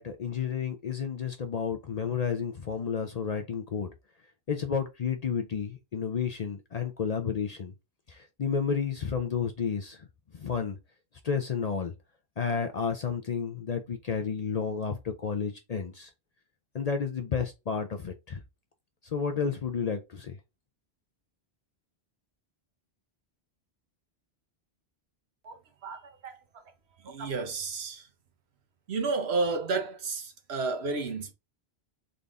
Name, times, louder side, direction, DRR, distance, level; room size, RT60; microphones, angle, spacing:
voice 1, 0.0-3.9 4.5-7.7 8.1-10.0 10.3-10.8 11.2-11.9 12.4-16.1 16.7-18.4 19.1-20.4, left 6 dB, 50° left, 0.5 m, -31 dB
voice 2, 25.8-26.4 27.0-28.0 28.9-31.3, right 3 dB, 75° right, 1.1 m, -31 dB
3.9 x 3.4 x 2.5 m
omnidirectional pair, 1.1 m